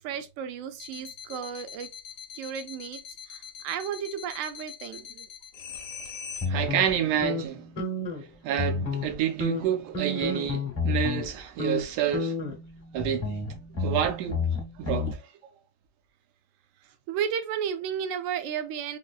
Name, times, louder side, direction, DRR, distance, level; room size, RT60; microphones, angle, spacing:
voice 1, 0.0-1.9 2.3-3.0 3.3-5.3 15.4-15.5 17.1-19.0, right 8 dB, 70° right, 0.8 m, -33 dB
sound 1, 0.8-6.5, left 7 dB, 65° left, 1.0 m, -41 dB
sound 2, 6.4-8.3 8.5-9.1 9.4-11.3 11.6-11.8 12.1-15.1, left 4 dB, 30° left, 0.8 m, -31 dB
voice 2, 6.5-7.7 8.4-12.4 12.9-13.4 13.8-14.5 14.8-15.1, right 9 dB, 90° right, 1.2 m, -28 dB
4.1 x 2.5 x 2.2 m
omnidirectional pair, 1.7 m